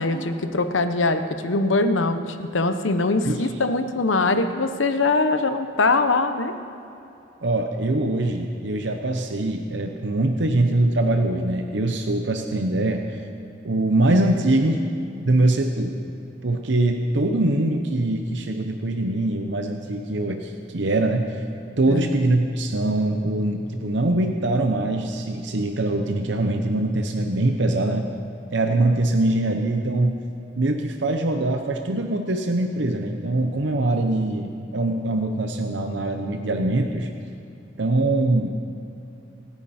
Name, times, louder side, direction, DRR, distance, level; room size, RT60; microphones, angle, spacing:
voice 1, 0.0-6.5 21.9-22.2, left 3 dB, 80° left, 8 dB, 1.0 m, -22 dB
voice 2, 7.4-13.2 13.6-14.8 15.3-15.9 16.4-21.4 21.8-28.1 28.5-30.2 30.6-37.1 37.8-38.5, right 2 dB, 65° right, 4 dB, 0.8 m, -23 dB
25.5 x 9.7 x 4.3 m, 2.8 s
head